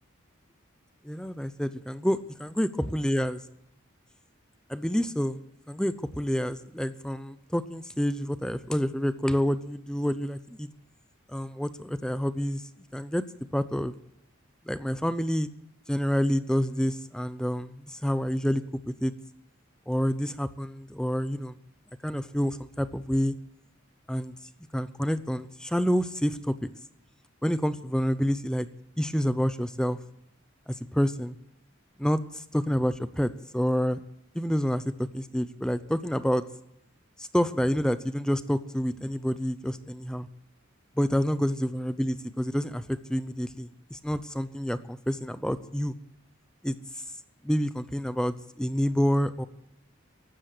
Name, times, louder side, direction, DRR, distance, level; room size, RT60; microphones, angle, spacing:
voice 1, 1.0-3.4 4.7-5.4 5.7-10.7 11.3-13.2 13.5-13.9 14.7-15.5 15.9-19.1 19.9-21.6 22.0-23.3 24.1-24.3 24.7-26.7 27.4-28.7 29.0-30.0 30.7-31.3 32.0-34.0 34.3-36.4 37.2-40.3 41.0-45.9 46.6-47.0 47.4-49.5, equal, 5° left, 13 dB, 0.6 m, -28 dB
15.5 x 12.5 x 6.6 m, 0.79 s
head